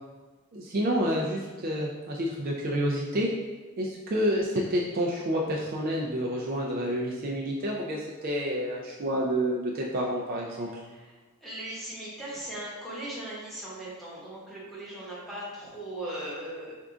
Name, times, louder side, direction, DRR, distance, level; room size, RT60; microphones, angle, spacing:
voice 1, 0.5-3.3 3.8-10.7, equal, 45° right, -3 dB, 0.4 m, -29 dB
voice 2, 10.5-16.7, right 1 dB, ahead, -8 dB, 1.0 m, -39 dB
3.6 x 2.4 x 3.7 m, 1.3 s
head